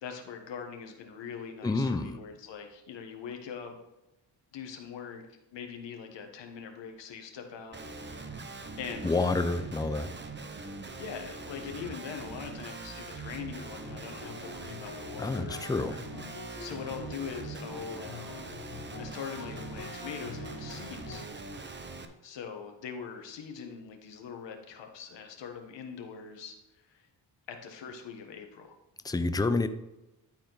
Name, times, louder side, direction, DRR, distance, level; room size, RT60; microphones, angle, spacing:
voice 1, 0.0-3.7 4.5-5.2 5.5-8.4 8.8-9.1 11.0-16.0 16.6-18.3 19.0-21.2 22.2-27.1 27.5-28.7, left 6 dB, 75° left, 4 dB, 1.4 m, -42 dB
voice 2, 1.6-2.2 9.0-10.1 15.2-16.0 29.0-29.7, left 3 dB, 10° left, 10 dB, 0.5 m, -28 dB
Guitar, 7.7-22.1, right 3 dB, 25° right, 0.8 m, -42 dB
sound 1, 13.8-21.3, left 4 dB, 50° left, 1.2 m, -46 dB
11.5 x 4.4 x 4.0 m, 0.97 s
cardioid pair, 90°, 43 cm